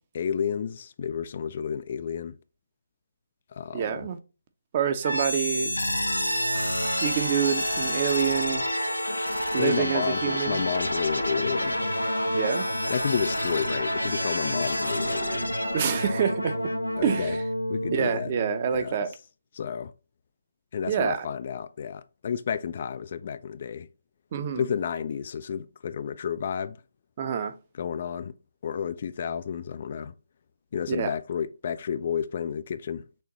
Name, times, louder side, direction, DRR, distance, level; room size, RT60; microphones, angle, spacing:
voice 1, 0.1-2.4 3.5-4.1 9.6-11.8 12.9-15.5 17.0-17.4 17.7-18.3 18.7-19.0 19.5-19.9 20.7-23.9 24.6-26.8 27.8-28.4 28.6-30.1 30.7-33.1, left 7 dB, 40° left, 0.3 m, -31 dB
voice 2, 3.7-4.2 4.7-5.7 7.0-8.6 9.5-10.7 12.3-12.7 15.7-16.6 17.0-17.4 17.9-19.1 20.9-21.3 24.3-24.7 27.2-27.5 30.9-31.1, right 8 dB, 30° right, 0.6 m, -27 dB
sound 1, 5.0-18.9, equal, 90° left, 0.8 m, -28 dB
6.3 x 2.5 x 2.9 m
figure-of-eight pair, 150°, 0 cm